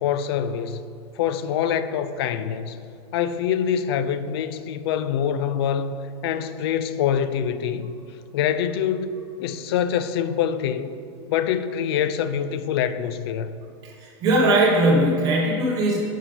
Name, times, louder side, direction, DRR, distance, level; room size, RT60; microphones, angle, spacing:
voice 1, 0.0-0.8 1.2-2.8 3.1-5.9 6.2-7.9 8.3-10.9 11.3-13.6, left 8 dB, 60° left, 0.4 m, -25 dB
voice 2, 13.8-16.0, right 1 dB, 25° right, 1.3 m, -20 dB
7.1 x 5.4 x 4.3 m
supercardioid pair, 165°, 14 cm